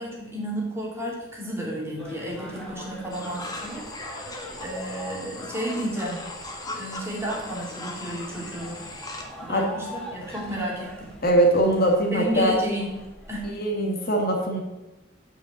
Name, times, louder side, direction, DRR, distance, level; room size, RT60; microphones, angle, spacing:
voice 1, 0.0-6.2 6.7-8.8 9.4-11.1 12.1-12.9 13.3-13.5, right 1 dB, 15° right, -3 dB, 2.8 m, -32 dB
sound 1, 2.0-13.5, equal, 5° left, 2.2 m, -42 dB
sound 2, 3.1-9.2, left 2 dB, 20° left, 1.3 m, -38 dB
voice 2, 11.2-12.6 13.4-14.6, right 1 dB, 50° left, 2 dB, 1.7 m, -22 dB
9.2 x 5.3 x 8.0 m, 1.0 s
head